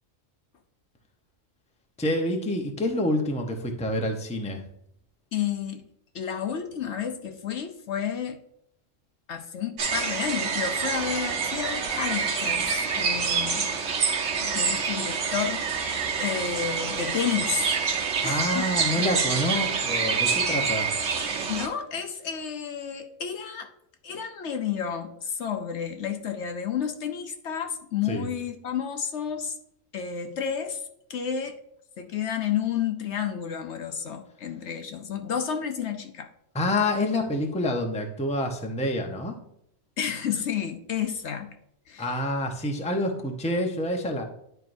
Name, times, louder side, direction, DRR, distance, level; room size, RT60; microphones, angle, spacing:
voice 1, 2.0-4.6 18.2-20.9 28.0-28.3 36.5-39.4 42.0-44.2, left 1 dB, 5° left, 3 dB, 0.7 m, -27 dB
voice 2, 5.3-5.8 6.1-8.4 9.3-13.7 14.4-17.8 18.2-18.6 21.5-23.7 24.0-29.5 29.9-30.8 31.1-31.6 32.0-36.3 40.0-41.5 41.9-42.1, left 8 dB, 65° left, 6 dB, 0.9 m, -31 dB
sound 1, 9.8-21.7, right 5 dB, 70° right, 1.3 m, -27 dB
10.5 x 4.5 x 2.6 m, 0.75 s
omnidirectional pair, 1.3 m